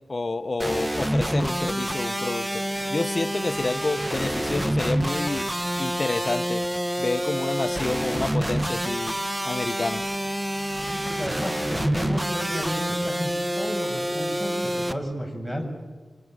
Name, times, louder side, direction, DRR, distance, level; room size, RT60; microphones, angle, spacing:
voice 1, 0.1-2.6 2.9-5.5 5.8-6.7 7.0-9.2 9.4-10.0, left 3 dB, 45° left, 10 dB, 0.9 m, -29 dB
sound 1, 0.6-14.9, equal, 10° right, 1.3 m, -27 dB
voice 2, 10.9-15.7, equal, 5° left, 2 dB, 6.4 m, -32 dB
25.5 x 25.0 x 8.9 m, 1.4 s
wide cardioid pair, 60°, 0 cm